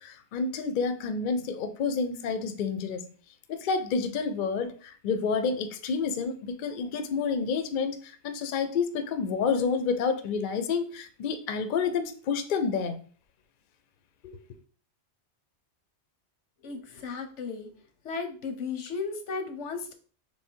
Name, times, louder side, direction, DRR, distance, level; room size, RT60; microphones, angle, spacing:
voice 1, 0.0-3.0 3.5-13.0, left 5 dB, 55° left, 0.6 m, -29 dB
voice 2, 16.6-17.7 18.0-19.9, left 4 dB, 85° left, 1.1 m, -35 dB
3.5 x 3.3 x 4.4 m
omnidirectional pair, 1.2 m